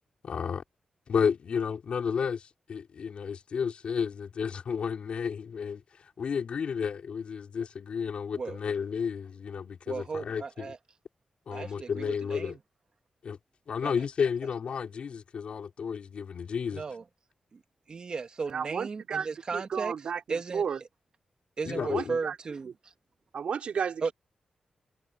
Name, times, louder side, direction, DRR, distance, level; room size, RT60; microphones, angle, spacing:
voice 1, 0.2-0.6 1.1-10.7 11.5-12.6 13.2-13.4 13.7-16.8 21.6-22.2, left 6 dB, 65° left, 5.6 m, -32 dB
voice 2, 9.9-10.8 11.5-12.6 13.8-13.9 16.7-17.0 17.5-17.6 17.9-19.9 20.3-20.6 21.6-22.9 24.0-24.1, right 4 dB, 45° right, 2.8 m, -35 dB
voice 3, 18.5-20.8 21.8-22.4 23.3-24.1, right 7 dB, 70° right, 3.7 m, -33 dB
wide cardioid pair, 140°, 2 cm